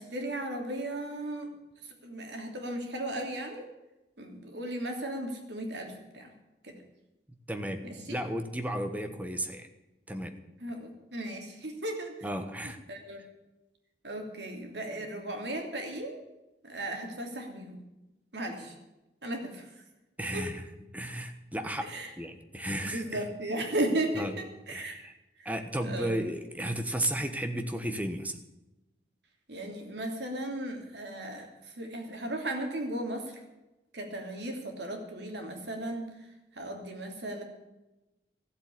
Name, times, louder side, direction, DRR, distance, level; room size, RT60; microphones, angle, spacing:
voice 1, 0.0-1.5 1.8-3.6 4.2-6.3 6.6-6.8 7.8-8.1 10.6-12.3 12.6-13.2 14.0-16.2 16.6-17.8 18.3-18.8 19.2-19.8 20.3-20.5 21.8-22.1 22.8-25.0 25.4-25.5 25.8-26.2 29.5-33.4 33.9-37.4, right 1 dB, 80° right, 3 dB, 3.0 m, -36 dB
voice 2, 7.5-9.7 10.1-10.4 12.2-12.8 20.2-20.6 20.9-23.2 24.2-24.3 24.7-25.1 25.4-28.4, right 1 dB, 10° right, 7 dB, 1.2 m, -34 dB
14.5 x 7.9 x 9.7 m, 1.0 s
head